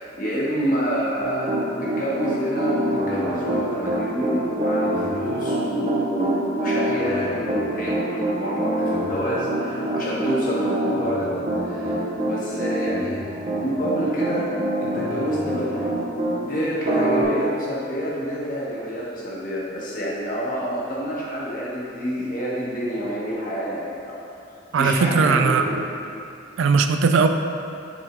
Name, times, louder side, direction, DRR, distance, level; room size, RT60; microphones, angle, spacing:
voice 1, 0.0-1.5 1.8-13.3 13.6-14.5 14.8-15.9 16.3-24.2 24.7-25.7, equal, 45° left, -7 dB, 1.2 m, -28 dB
Piano, 1.2-16.4 16.8-17.2, right 1 dB, 35° right, 0.7 m, -25 dB
voice 2, 24.7-25.8 26.6-27.3, right 5 dB, 80° right, 7 dB, 0.3 m, -19 dB
6.2 x 3.6 x 4.4 m, 2.6 s
head